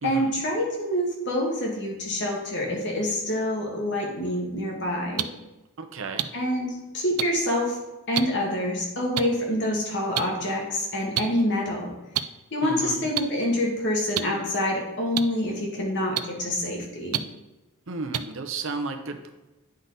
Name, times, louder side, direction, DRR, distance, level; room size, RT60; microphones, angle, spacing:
voice 1, 0.0-5.3 6.3-6.7 6.9-7.8 8.1-11.9 12.5-17.2, left 1 dB, 55° left, -1 dB, 1.7 m, -26 dB
sound 1, 5.2-5.3 6.2-6.3 7.2-7.3 8.2-8.3 9.2-9.3 10.2-10.3 11.1-11.2 12.1-12.2 13.2-13.3 14.1-14.2 15.2-15.3 16.2-16.3 17.1-17.2 18.1-18.2, right 12 dB, 85° right, 0.4 m, -25 dB
voice 2, 5.8-6.3 12.6-13.1 17.9-19.3, right 3 dB, 60° right, 6 dB, 0.7 m, -33 dB
9.5 x 3.9 x 4.0 m, 1.0 s
head